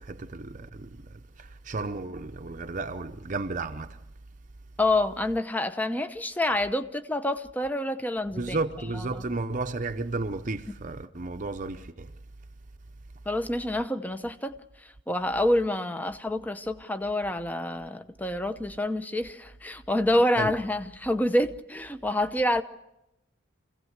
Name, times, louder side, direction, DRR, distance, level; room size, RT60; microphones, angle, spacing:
voice 1, 0.0-4.0 8.3-12.2 20.4-20.6, right 3 dB, 40° right, 0.7 m, -33 dB
voice 2, 4.8-8.6 9.1-9.2 13.3-22.6, left 1 dB, 10° left, 0.8 m, -27 dB
26.5 x 16.5 x 8.0 m
head